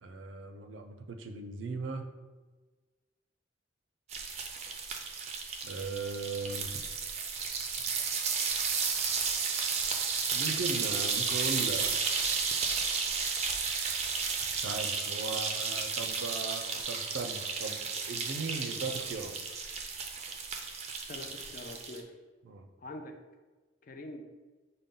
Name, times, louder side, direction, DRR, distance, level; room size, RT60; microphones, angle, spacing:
voice 1, 0.0-2.1 5.6-6.8 10.3-12.0 14.6-19.3 22.4-22.7, right 3 dB, 90° right, 5 dB, 0.5 m, -38 dB
sound 1, 4.1-22.0, right 5 dB, 35° right, 0.4 m, -33 dB
voice 2, 21.1-22.1 22.8-23.1 23.8-24.2, left 1 dB, 45° left, 4 dB, 0.4 m, -44 dB
5.2 x 2.2 x 3.7 m, 1.3 s
head